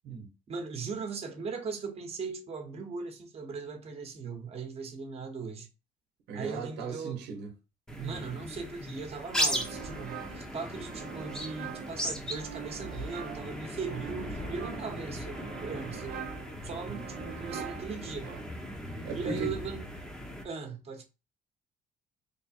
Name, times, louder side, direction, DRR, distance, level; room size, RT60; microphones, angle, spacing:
voice 1, 0.5-5.7 6.3-7.3 8.0-16.3 16.6-18.3 19.1-19.9 20.4-21.0, right 5 dB, 35° right, 1.1 m, -39 dB
voice 2, 6.3-7.5 7.9-8.2 19.0-19.5, right 5 dB, 85° right, 1.0 m, -37 dB
sound 1, 7.9-20.4, equal, 5° left, 0.8 m, -37 dB
sound 2, 9.3-18.8, right 9 dB, 65° right, 0.7 m, -44 dB
3.3 x 2.2 x 4.3 m
cardioid pair, 110°, 17 cm